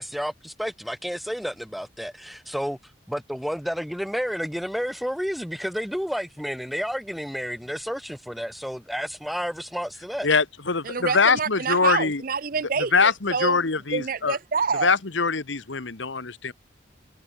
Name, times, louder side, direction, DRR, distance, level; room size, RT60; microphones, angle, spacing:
voice 1, 0.0-2.8 3.1-10.3, equal, ahead, 1.6 m, -31 dB
voice 2, 10.2-12.2 12.9-14.4 14.8-16.5, left 4 dB, 75° left, 1.5 m, -23 dB
voice 3, 10.8-13.6 13.9-14.9, right 5 dB, 45° right, 0.6 m, -27 dB
head